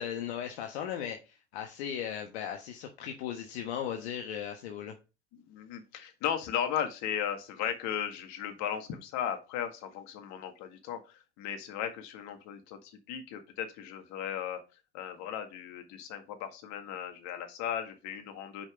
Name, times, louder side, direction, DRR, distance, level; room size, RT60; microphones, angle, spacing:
voice 1, 0.0-4.9, left 9 dB, 70° left, 4 dB, 1.3 m, -37 dB
voice 2, 5.3-14.6 14.9-18.7, left 9 dB, 55° left, 6 dB, 1.8 m, -36 dB
5.9 x 5.3 x 5.0 m, 0.29 s
hypercardioid pair, 90°, 33 cm